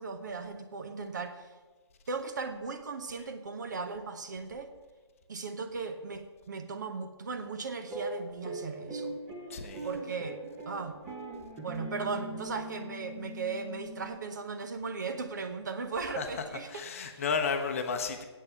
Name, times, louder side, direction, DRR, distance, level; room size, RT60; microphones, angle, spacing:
voice 1, 0.0-1.5 2.1-4.7 5.3-9.1 9.8-10.4 10.7-11.0 11.6-16.8 17.1-17.2, right 4 dB, 40° right, 8 dB, 0.9 m, -37 dB
sound 1, 7.9-14.4, right 1 dB, 15° right, 1.0 m, -41 dB
voice 2, 9.5-9.9 16.2-16.3 16.7-18.2, left 5 dB, 30° left, 6 dB, 0.8 m, -32 dB
8.4 x 6.5 x 8.4 m, 1.3 s
figure-of-eight pair, 150°, 14 cm